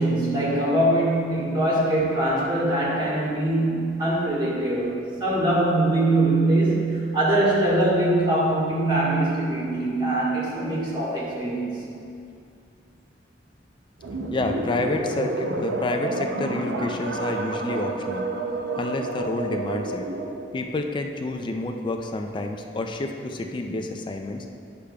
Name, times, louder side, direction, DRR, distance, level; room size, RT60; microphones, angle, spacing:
voice 1, 0.0-11.8, right 1 dB, 25° right, -6 dB, 1.5 m, -22 dB
sound 1, 14.0-20.5, right 2 dB, 80° right, 0.6 m, -29 dB
voice 2, 14.3-18.3 18.7-20.1 20.5-24.5, left 2 dB, 25° left, 4 dB, 0.4 m, -29 dB
9.9 x 6.6 x 2.3 m, 2.4 s
head